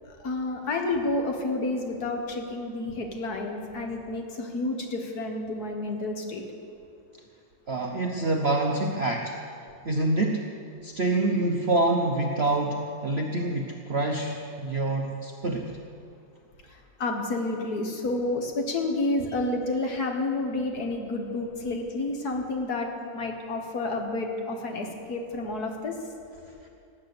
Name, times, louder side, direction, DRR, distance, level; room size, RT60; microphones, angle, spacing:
voice 1, 0.2-6.4 16.7-26.0, left 2 dB, 55° left, 2 dB, 1.9 m, -30 dB
voice 2, 7.7-9.3 9.8-10.5 10.8-15.7, right 2 dB, 50° right, 2 dB, 0.8 m, -26 dB
18.0 x 8.8 x 6.8 m, 2.5 s
omnidirectional pair, 2.1 m